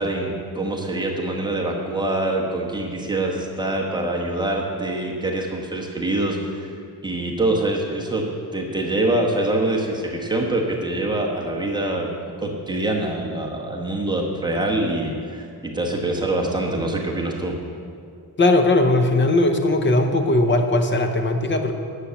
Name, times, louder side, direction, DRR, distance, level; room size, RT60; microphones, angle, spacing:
voice 1, 0.0-6.7 7.0-8.3 8.5-12.1 12.4-17.6, right 2 dB, 10° right, -2 dB, 1.1 m, -24 dB
voice 2, 18.4-21.8, left 2 dB, 30° left, 6 dB, 0.7 m, -19 dB
10.0 x 6.5 x 7.0 m, 2.3 s
wide cardioid pair, 180°, 39 cm